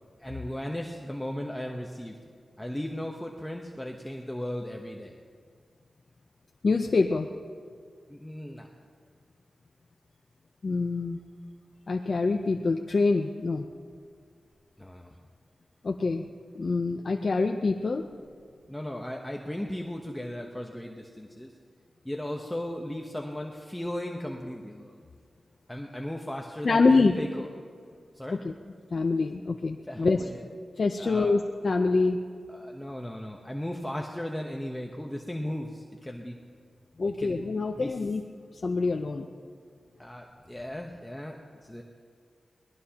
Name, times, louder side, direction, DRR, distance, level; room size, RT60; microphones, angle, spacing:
voice 1, 0.2-2.2 2.6-5.2 8.1-8.7 14.8-15.1 18.7-21.5 22.0-25.1 25.7-27.5 28.1-28.5 29.8-30.5 31.0-31.3 32.5-36.4 37.1-37.4 37.7-38.1 40.0-41.8, left 1 dB, 10° left, 1 dB, 1.0 m, -36 dB
voice 2, 6.6-7.3 10.6-11.2 11.9-13.7 15.8-16.2 16.6-18.1 26.6-27.1 28.4-28.5 28.9-30.2 30.8-32.2 37.0-38.2 38.5-39.3, left 3 dB, 50° left, 2 dB, 0.7 m, -25 dB
24.0 x 19.5 x 2.9 m, 2.1 s
wide cardioid pair, 95°, 0 cm